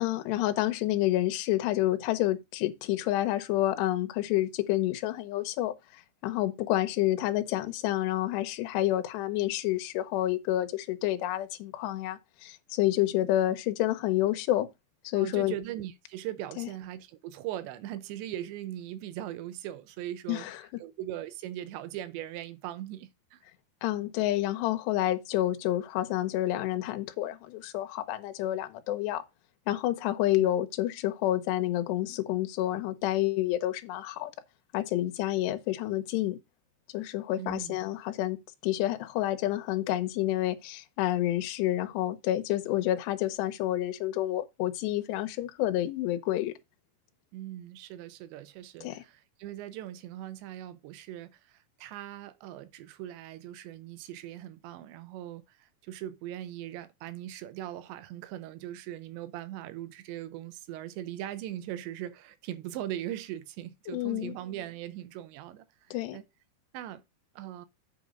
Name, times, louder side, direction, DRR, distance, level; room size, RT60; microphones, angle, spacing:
voice 1, 0.0-14.7 15.0-15.5 16.6-16.7 20.3-20.8 23.8-29.2 29.7-34.3 34.7-36.4 36.9-46.5 48.8-49.0 63.9-64.3 65.9-66.2, left 14 dB, 80° left, 3.0 m, -29 dB
voice 2, 15.1-20.5 20.8-23.4 30.4-30.5 37.4-37.8 47.3-66.2 66.7-67.0 67.4-67.7, right 12 dB, 85° right, 3.1 m, -40 dB
8.5 x 5.1 x 5.1 m
omnidirectional pair, 5.0 m